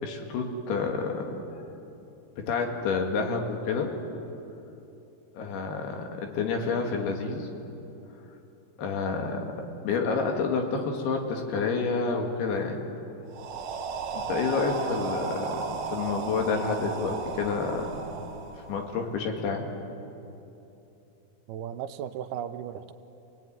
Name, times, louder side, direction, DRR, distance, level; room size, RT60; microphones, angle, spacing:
voice 1, 0.0-1.4 2.4-3.9 5.4-7.5 8.8-9.5 9.8-12.8 14.1-18.0 18.7-19.7, left 4 dB, 80° left, 3 dB, 4.1 m, -29 dB
sound 1, 13.3-19.2, right 5 dB, 65° right, 2.1 m, -35 dB
voice 2, 21.5-22.9, right 9 dB, 90° right, 10 dB, 2.8 m, -36 dB
26.5 x 18.0 x 9.4 m, 2.9 s
omnidirectional pair, 4.5 m